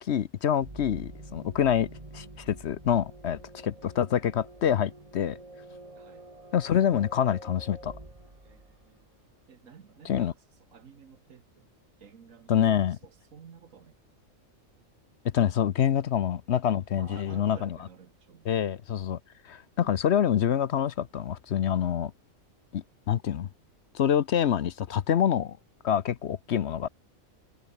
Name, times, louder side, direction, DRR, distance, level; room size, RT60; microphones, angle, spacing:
voice 1, 0.0-1.9 2.1-5.4 6.5-7.9 10.0-10.3 12.5-13.0 15.3-17.8 18.4-19.2 19.4-22.1 22.7-23.5 23.9-25.6 25.8-26.9, left 9 dB, 60° left, 1.0 m, -26 dB
sound 1, 0.6-9.2, right 2 dB, 25° right, 3.1 m, -47 dB
voice 2, 6.0-6.3 8.4-9.1 9.5-10.4 10.7-11.7 12.0-12.7 13.0-14.0 16.9-18.5 19.8-20.0, right 7 dB, 80° right, 1.8 m, -51 dB
omnidirectional pair, 1.4 m